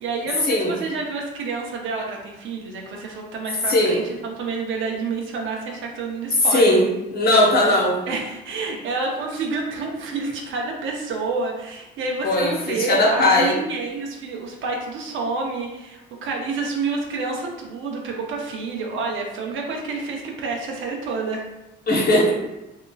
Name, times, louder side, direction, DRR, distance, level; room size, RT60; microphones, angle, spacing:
voice 1, 0.0-6.7 8.1-21.4, right 4 dB, 80° right, 0 dB, 0.6 m, -29 dB
voice 2, 3.7-4.0 6.5-6.8 7.1-8.0 12.2-13.5 21.9-22.3, left 1 dB, 50° left, -4 dB, 0.9 m, -18 dB
2.8 x 2.3 x 2.2 m, 0.99 s
cardioid pair, 90°, 20 cm